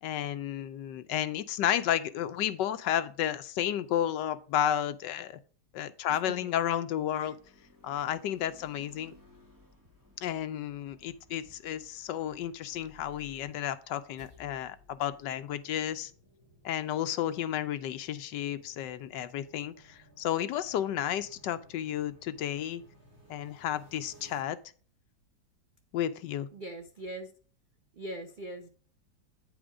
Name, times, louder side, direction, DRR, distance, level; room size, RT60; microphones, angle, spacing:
voice 1, 0.0-5.4 5.7-7.4 7.8-9.1 10.2-16.1 16.6-22.8 23.3-24.6 25.9-26.5, left 10 dB, 75° left, 12 dB, 1.2 m, -32 dB
voice 2, 6.1-6.5 7.2-7.3 8.0-8.1 26.5-27.3 28.0-28.7, right 1 dB, 70° right, 6 dB, 0.4 m, -41 dB
sound 1, 7.2-13.0, left 1 dB, 10° right, 1.4 m, -60 dB
sound 2, 12.5-24.4, equal, 35° right, 3.4 m, -60 dB
8.8 x 5.1 x 4.8 m, 0.41 s
omnidirectional pair, 2.0 m